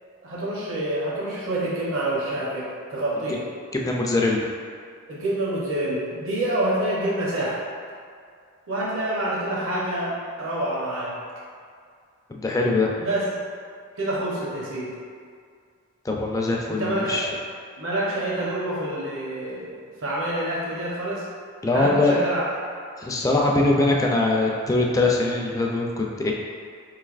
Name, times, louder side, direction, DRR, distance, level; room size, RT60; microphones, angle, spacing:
voice 1, 0.2-3.4 5.1-7.6 8.7-11.2 13.0-13.3 14.0-14.9 16.7-17.2 17.8-21.2 21.7-22.4, right 1 dB, 65° right, -6 dB, 0.7 m, -27 dB
voice 2, 3.7-4.4 12.3-13.0 16.0-17.3 21.6-22.1 23.0-26.3, left 2 dB, 15° left, -1 dB, 0.3 m, -22 dB
4.5 x 3.2 x 2.4 m, 2.1 s
head